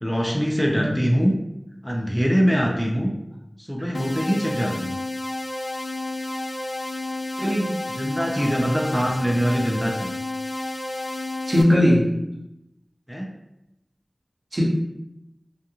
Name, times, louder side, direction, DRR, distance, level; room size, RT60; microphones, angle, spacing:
voice 1, 0.0-1.3 1.8-3.1 3.6-4.9 8.0-10.1 13.1-13.3, equal, ahead, -1 dB, 0.4 m, -23 dB
sound 1, 3.9-11.6, left 2 dB, 90° left, 0.3 m, -31 dB
voice 2, 7.4-7.7 11.5-12.1 14.5-14.7, left 1 dB, 60° right, -5 dB, 0.8 m, -19 dB
2.8 x 2.5 x 2.3 m, 0.88 s
wide cardioid pair, 40°, 0 cm